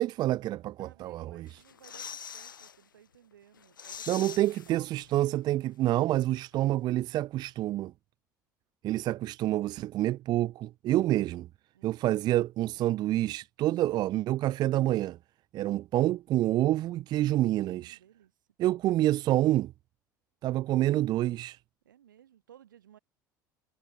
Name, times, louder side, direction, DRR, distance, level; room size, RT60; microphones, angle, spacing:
voice 1, 0.0-1.5 4.1-7.9 8.8-11.5 11.8-15.2 15.5-18.0 18.6-19.7 20.4-21.6, right 14 dB, 40° right, 0.4 m, -27 dB
voice 2, 0.8-5.1 11.7-12.0 13.6-13.8 17.6-18.3 21.8-23.0, right 10 dB, 75° right, 7.0 m, -58 dB
sound 1, 1.5-2.8 3.1-3.2 3.5-5.3 5.6-5.7, left 8 dB, 80° left, 0.4 m, -44 dB
figure-of-eight pair, 65°, 11 cm